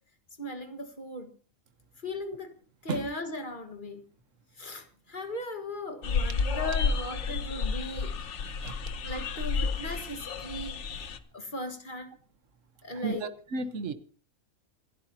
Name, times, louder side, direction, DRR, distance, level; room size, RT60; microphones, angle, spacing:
voice 1, 0.4-1.3 2.0-2.5 2.8-4.0 4.6-8.1 9.0-12.2 12.8-13.3, left 1 dB, 35° left, 1.8 m, -38 dB
sound 1, 6.0-11.2, left 5 dB, 60° left, 1.2 m, -31 dB
voice 2, 12.9-13.9, right 4 dB, 65° right, 1.4 m, -33 dB
28.0 x 11.5 x 2.9 m
omnidirectional pair, 1.4 m